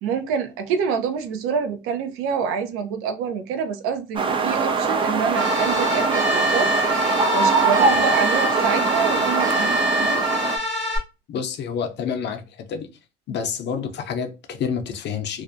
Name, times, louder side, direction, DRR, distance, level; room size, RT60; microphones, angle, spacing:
voice 1, 0.0-6.7 7.3-10.2, right 6 dB, 85° right, 0.5 m, -26 dB
sound 1, 4.2-10.6, right 4 dB, 25° right, 0.4 m, -22 dB
sound 2, 5.4-11.0, left 1 dB, 65° right, 1.2 m, -25 dB
voice 2, 11.3-12.9 13.3-15.4, left 7 dB, 55° left, 0.6 m, -28 dB
2.4 x 2.1 x 2.5 m
cardioid pair, 100°, 21 cm